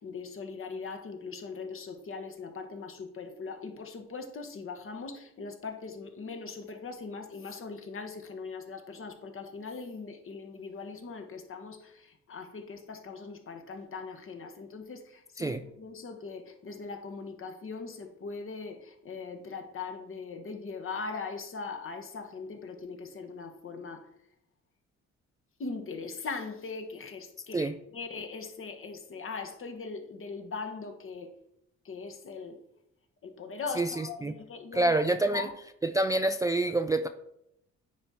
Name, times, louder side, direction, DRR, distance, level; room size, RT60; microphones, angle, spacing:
voice 1, 0.0-24.1 25.6-31.3 31.8-32.6 33.2-34.9 35.3-35.5, left 4 dB, 45° left, 5 dB, 1.2 m, -40 dB
voice 2, 33.8-34.3 34.7-35.5 35.8-37.1, right 2 dB, 10° right, 8 dB, 0.3 m, -27 dB
9.7 x 3.6 x 4.2 m, 0.79 s
cardioid pair, 90°, 30 cm